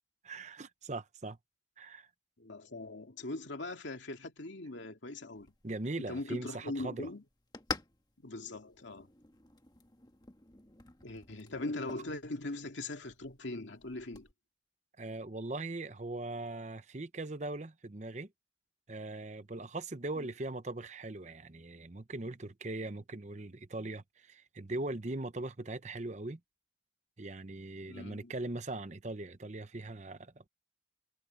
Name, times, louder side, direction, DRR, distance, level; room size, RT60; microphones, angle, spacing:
voice 1, 0.2-1.4 1.8-2.1 5.6-7.1 15.0-18.3 18.9-26.4 27.2-30.5, right 2 dB, 40° right, 0.8 m, -40 dB
voice 2, 2.4-5.5 6.0-7.2 8.2-9.1 11.0-14.3 20.2-20.3 27.9-28.3, left 2 dB, 85° left, 2.3 m, -41 dB
sound 1, 5.3-14.3, left 4 dB, 20° left, 1.5 m, -48 dB
head